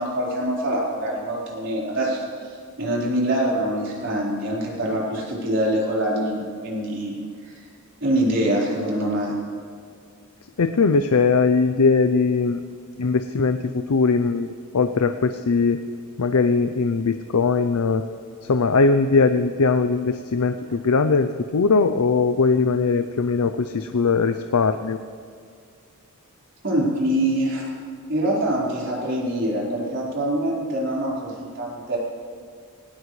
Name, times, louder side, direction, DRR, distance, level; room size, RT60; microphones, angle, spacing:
voice 1, 0.0-7.6 8.0-9.4 26.6-27.7 28.1-32.0, right 1 dB, 55° right, -5 dB, 4.5 m, -24 dB
voice 2, 10.6-12.6 13.0-15.8 16.2-18.0 18.4-25.0, left 4 dB, 80° left, 8 dB, 0.6 m, -20 dB
19.5 x 19.0 x 3.3 m, 2.1 s
head